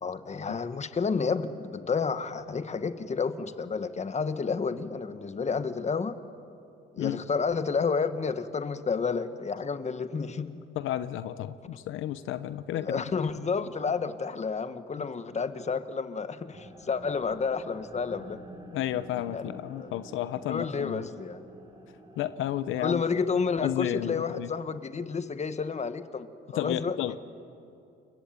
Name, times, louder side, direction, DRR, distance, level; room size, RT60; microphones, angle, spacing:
voice 1, 0.0-6.2 6.9-10.5 12.7-18.4 19.3-19.9 20.5-21.4 22.8-27.2, left 5 dB, 35° left, 11 dB, 1.4 m, -30 dB
voice 2, 10.7-13.2 15.0-15.1 18.7-21.0 22.2-23.0 23.6-24.5 26.5-27.2, left 12 dB, 90° left, 13 dB, 0.9 m, -32 dB
sound 1, 16.5-23.2, right 1 dB, 20° right, 6.5 m, -49 dB
29.0 x 22.0 x 8.9 m, 2.6 s
cardioid pair, 90°, 20 cm